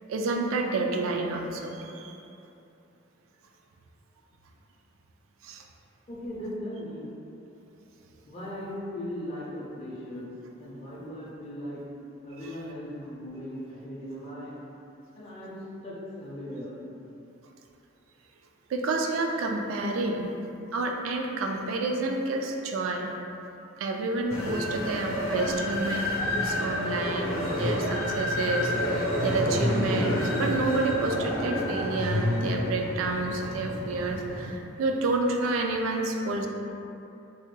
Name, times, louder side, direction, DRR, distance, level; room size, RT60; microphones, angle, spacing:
voice 1, 0.1-2.2 5.4-5.6 18.7-20.3 20.7-23.1 23.8-26.1 26.4-36.5, right 2 dB, 80° right, 2 dB, 0.3 m, -29 dB
voice 2, 6.1-7.1 8.3-10.3 10.6-11.8 12.2-14.6 15.2-15.6 15.8-16.7, equal, 30° left, -8 dB, 0.4 m, -38 dB
sound 1, 24.3-34.5, left 1 dB, 80° left, 0.6 m, -29 dB
3.3 x 2.1 x 3.1 m, 2.8 s
head